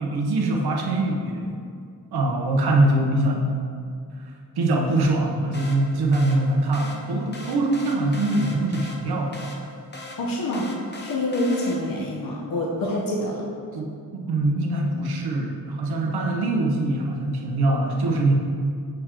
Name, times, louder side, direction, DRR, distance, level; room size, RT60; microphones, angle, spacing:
voice 1, 0.0-1.6 2.1-3.5 4.6-9.4 12.8-12.9 13.7-18.3, right 2 dB, 85° right, 1 dB, 0.9 m, -23 dB
sound 1, 5.5-12.1, left 1 dB, 30° left, 0.8 m, -40 dB
voice 2, 10.2-10.7 11.0-13.4, left 1 dB, 65° left, -3 dB, 1.0 m, -26 dB
6.6 x 6.4 x 3.0 m, 2.3 s
wide cardioid pair, 105°, 37 cm